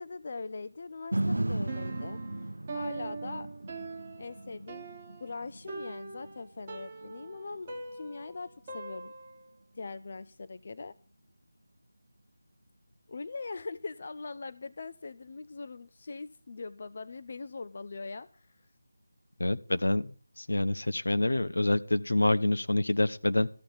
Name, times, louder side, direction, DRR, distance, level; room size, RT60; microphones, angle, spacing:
voice 1, 0.0-2.2 2.7-3.5 4.2-4.9 5.2-9.1 9.7-10.9 13.1-18.6, left 4 dB, 45° left, 14 dB, 0.5 m, -41 dB
sound 1, 1.1-9.3 9.8-9.9, right 1 dB, 80° right, 0.6 m, -37 dB
Piano, 1.7-9.5, right 3 dB, 25° right, 1.4 m, -42 dB
voice 2, 19.4-23.5, left 1 dB, 75° left, 11 dB, 1.1 m, -27 dB
14.0 x 7.8 x 7.1 m, 0.39 s
figure-of-eight pair, 165°, 0 cm